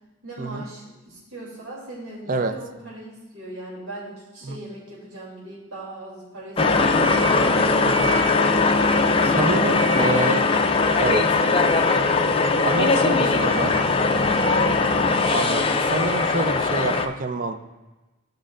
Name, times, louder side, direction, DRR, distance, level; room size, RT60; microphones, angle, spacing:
voice 1, 0.2-8.6 9.7-10.3 11.4-11.7 13.0-13.9 14.2-15.1, right 1 dB, 85° right, -7 dB, 2.8 m, -38 dB
sound 1, 6.6-17.1, left 3 dB, 25° left, 0.4 m, -20 dB
voice 2, 9.4-10.4 11.0-11.3 12.6-13.7 15.3-17.6, right 3 dB, 40° right, 7 dB, 0.5 m, -27 dB
14.5 x 5.2 x 2.5 m, 1.1 s
head